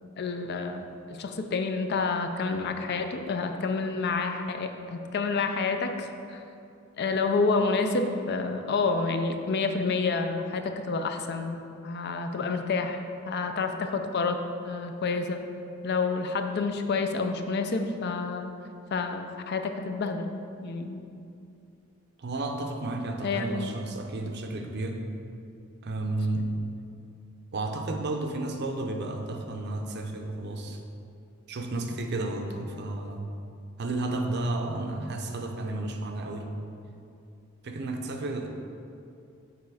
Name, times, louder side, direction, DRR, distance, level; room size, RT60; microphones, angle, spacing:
voice 1, 0.2-6.4 7.0-15.4 15.8-18.5 18.9-20.3 20.6-21.0 23.2-23.7, left 4 dB, 50° left, 6 dB, 0.4 m, -29 dB
voice 2, 22.2-25.1 25.8-26.5 27.5-30.8 31.5-33.3 33.8-36.5 37.6-38.5, right 2 dB, 55° right, 4 dB, 0.6 m, -32 dB
6.8 x 4.1 x 4.8 m, 2.6 s
head